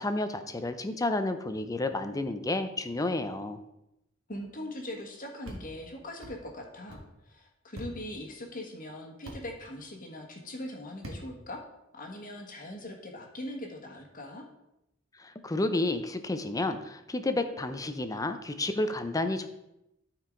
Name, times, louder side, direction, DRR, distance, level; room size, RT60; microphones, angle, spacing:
voice 1, 0.0-3.6 15.2-19.5, left 2 dB, 15° left, 9 dB, 0.5 m, -31 dB
voice 2, 4.3-11.6 11.9-14.5, left 1 dB, 45° left, 2 dB, 1.5 m, -41 dB
sound 1, 5.4-5.6 6.2-6.4 6.9-7.0 7.7-7.9 9.2-9.4 11.0-11.2, equal, 70° right, 1.6 m, -41 dB
12.5 x 4.7 x 3.8 m, 0.87 s
head